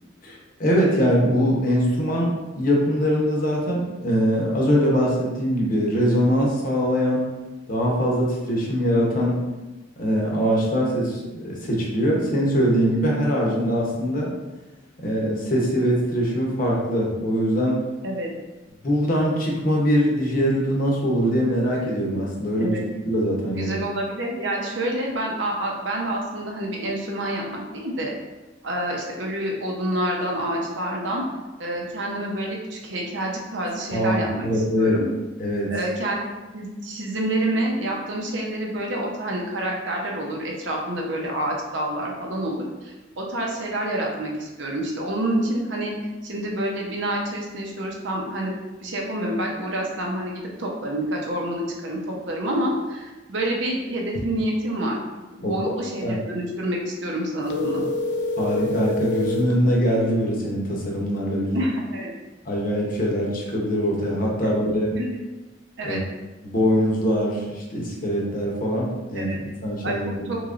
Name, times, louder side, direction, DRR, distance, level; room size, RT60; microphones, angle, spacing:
voice 1, 0.2-7.2 7.7-9.4 10.0-14.3 15.0-17.8 18.8-22.8 23.0-23.8 33.9-35.0 35.4-35.7 55.4-55.7 56.0-56.2 58.4-61.6 62.4-65.0 65.8-66.0 66.4-69.3 69.6-70.3, equal, 50° left, -3 dB, 0.8 m, -22 dB
voice 2, 23.5-28.1 28.6-31.2 31.6-34.5 34.8-35.1 35.7-36.2 36.5-45.9 46.2-55.0 55.3-57.8 61.5-62.1 64.4-64.5 64.9-65.2 65.8-66.0 69.1-69.4 69.8-70.4, right 1 dB, 75° right, -1 dB, 0.7 m, -28 dB
sound 1, 57.5-59.6, left 2 dB, 65° left, 0.4 m, -26 dB
3.5 x 3.2 x 2.5 m, 1.1 s
head